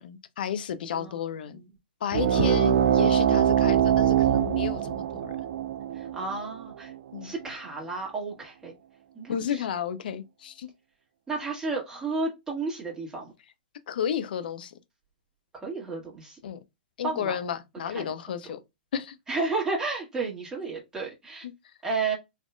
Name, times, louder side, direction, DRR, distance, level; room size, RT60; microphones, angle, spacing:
voice 1, 0.0-1.6 2.0-5.3 7.1-7.3 9.3-10.7 13.9-14.7 16.4-16.6 17.0-18.6 18.9-19.2, left 8 dB, 60° left, 0.6 m, -32 dB
sound 1, 2.1-7.2, right 9 dB, 60° right, 0.4 m, -23 dB
voice 2, 2.3-3.1 5.9-6.9 7.2-8.7 9.1-9.6 11.3-13.3 15.5-16.4 17.0-17.4 17.9-18.1 19.3-21.5 21.8-22.1, right 3 dB, 10° right, 1.6 m, -32 dB
4.3 x 2.8 x 2.3 m
hypercardioid pair, 125°, 5 cm